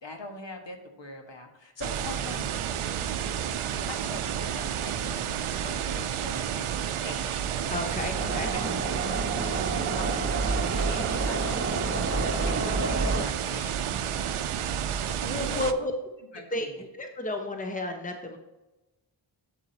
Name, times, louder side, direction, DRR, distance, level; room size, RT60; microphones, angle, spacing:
voice 1, 0.0-2.5 3.9-7.8 8.0-13.7 14.0-14.8 15.2-15.9 16.3-16.8, left 2 dB, 60° left, 3 dB, 1.6 m, -43 dB
sound 1, 1.8-15.7, right 9 dB, 80° right, 0.6 m, -31 dB
voice 2, 7.7-8.5 15.3-15.9 16.5-16.7 16.9-18.4, left 2 dB, 15° left, 4 dB, 1.0 m, -31 dB
sound 2, 8.2-13.3, right 3 dB, 25° right, 1.1 m, -29 dB
8.4 x 7.4 x 2.9 m, 1.0 s
cardioid pair, 50°, 49 cm